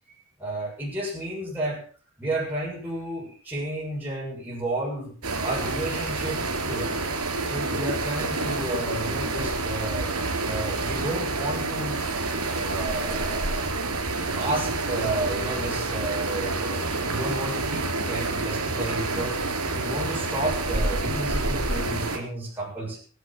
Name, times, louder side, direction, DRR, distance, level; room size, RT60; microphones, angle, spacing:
voice 1, 0.4-1.8 2.2-5.2 5.4-6.9 7.4-10.1 10.4-12.1 12.5-13.7 14.4-19.4 19.7-23.0, right 2 dB, 10° right, -5 dB, 7.1 m, -32 dB
sound 1, 5.2-22.2, right 2 dB, 85° right, 3.7 m, -28 dB
15.0 x 12.0 x 6.1 m, 0.40 s
head